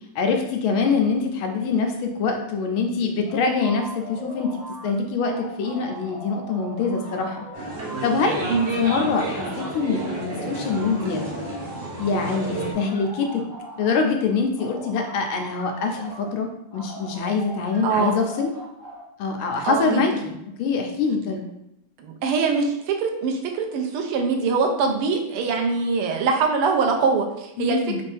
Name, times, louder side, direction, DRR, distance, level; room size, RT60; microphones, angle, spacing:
voice 1, 0.1-7.4 8.0-8.4 8.8-11.3 12.0-13.4 13.8-18.5 19.2-21.4 27.6-28.0, left 4 dB, 75° left, 3 dB, 1.3 m, -24 dB
sound 1, 3.3-4.9 5.2-14.1 14.5-16.3 16.7-19.0, right 1 dB, 55° left, 1.6 m, -39 dB
sound 2, 7.5-12.7, right 2 dB, 70° right, 0.6 m, -31 dB
voice 2, 17.8-18.2 19.7-20.0 22.0-28.0, right 4 dB, 90° right, 3 dB, 1.5 m, -23 dB
4.2 x 2.6 x 3.3 m, 0.81 s
omnidirectional pair, 2.4 m